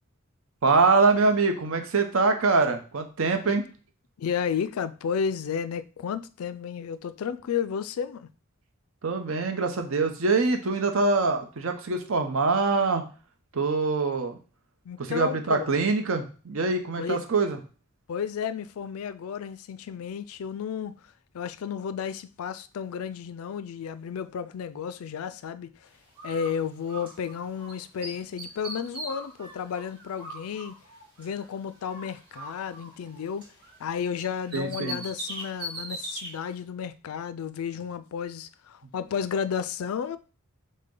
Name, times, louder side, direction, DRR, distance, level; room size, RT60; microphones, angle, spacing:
voice 1, 0.6-3.6 9.0-13.0 13.5-14.4 15.0-17.6 34.5-35.0, right 3 dB, 75° right, 0.8 m, -24 dB
voice 2, 4.2-8.3 14.9-15.7 17.0-17.3 18.1-21.0 21.3-25.9 26.2-30.8 31.2-33.5 33.8-40.2, left 7 dB, 85° left, 0.3 m, -32 dB
Bird, 26.1-27.7 28.0-31.5 31.8-33.9 34.2-36.3, right 1 dB, 20° right, 2.6 m, -40 dB
6.4 x 2.2 x 3.7 m
head